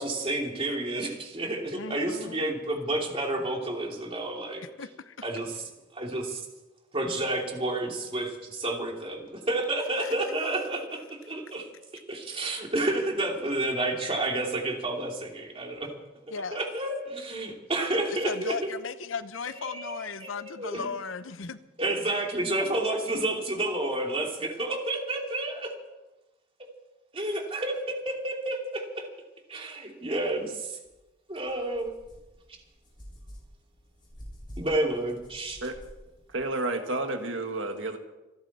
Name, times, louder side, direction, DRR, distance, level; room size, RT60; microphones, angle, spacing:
voice 1, 0.0-4.6 5.2-5.7 5.9-6.5 6.9-11.7 12.1-15.9 16.5-18.7 19.5-20.8 21.8-25.7 27.1-29.1 29.5-30.8 31.3-31.9 34.6-35.7, right 2 dB, 30° right, 1 dB, 2.7 m, -30 dB
voice 2, 1.8-2.5 4.8-5.2 10.0-10.1 16.3-16.6 18.2-21.6, left 5 dB, 80° left, 13 dB, 0.8 m, -36 dB
sound 1, 30.8-31.0 31.4-36.4, equal, 25° left, 5.9 m, -48 dB
voice 3, 36.3-38.0, right 2 dB, 70° right, 5 dB, 1.7 m, -30 dB
27.0 x 10.5 x 4.2 m, 1.0 s
head